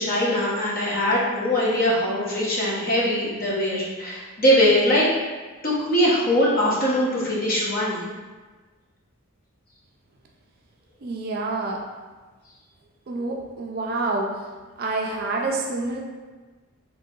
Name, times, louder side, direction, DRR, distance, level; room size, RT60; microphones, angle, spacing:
voice 1, 0.0-5.1 5.6-8.0, equal, 40° left, -6 dB, 0.8 m, -22 dB
voice 2, 11.0-11.8 13.1-14.5 14.8-16.0, right 2 dB, 45° right, 0 dB, 0.3 m, -27 dB
3.8 x 2.9 x 2.7 m, 1.3 s
head